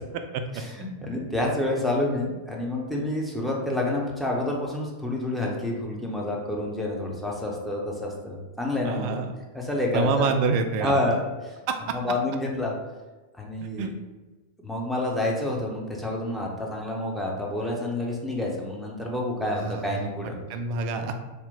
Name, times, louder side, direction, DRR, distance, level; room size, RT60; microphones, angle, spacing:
voice 1, 0.5-9.2 9.5-10.3 10.8-11.5 11.9-12.7 13.4-13.9 14.6-20.4, left 1 dB, ahead, -2 dB, 0.6 m, -28 dB
voice 2, 8.8-9.3 9.9-11.0 11.7-11.8 13.8-13.9 19.6-20.1 20.5-21.1, right 4 dB, 45° right, 6 dB, 0.3 m, -26 dB
2.9 x 2.0 x 3.6 m, 1.2 s
figure-of-eight pair, 90°, 0 cm